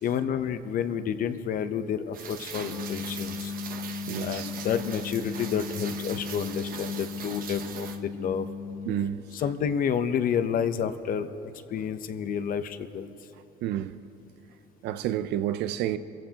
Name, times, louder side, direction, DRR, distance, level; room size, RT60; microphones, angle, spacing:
voice 1, 0.0-3.5 4.2-8.5 9.3-13.1, left 7 dB, 55° left, 0.8 m, -30 dB
Rain, 2.1-8.0, right 7 dB, 55° right, 1.0 m, -41 dB
sound 1, 2.6-9.1, left 5 dB, 90° left, 3.1 m, -36 dB
voice 2, 4.1-4.5 8.9-9.2 13.6-14.0 14.8-16.0, right 12 dB, 80° right, 0.6 m, -30 dB
28.0 x 15.0 x 2.9 m
cardioid pair, 110°, 17 cm